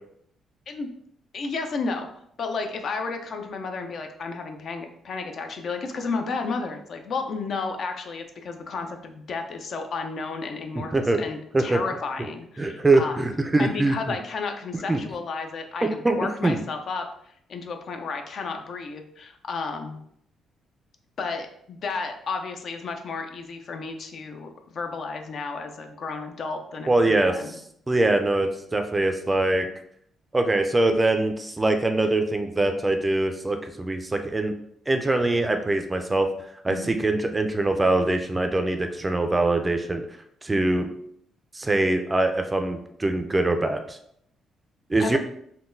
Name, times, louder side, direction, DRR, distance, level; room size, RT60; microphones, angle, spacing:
voice 1, 1.3-2.1 2.4-13.2 13.6-17.1 17.5-20.0 21.2-27.6 36.7-36.9 45.0-45.2, left 4 dB, 60° left, 5 dB, 0.4 m, -32 dB
voice 2, 12.6-14.0 14.9-15.0 16.0-16.2 16.4-16.6 26.9-27.3 27.9-29.7 30.3-34.5 34.9-36.3 36.6-40.0 40.4-40.9 41.5-44.0 44.9-45.2, right 2 dB, 20° right, 6 dB, 0.4 m, -23 dB
3.7 x 2.2 x 2.5 m, 0.70 s
cardioid pair, 90°, 0 cm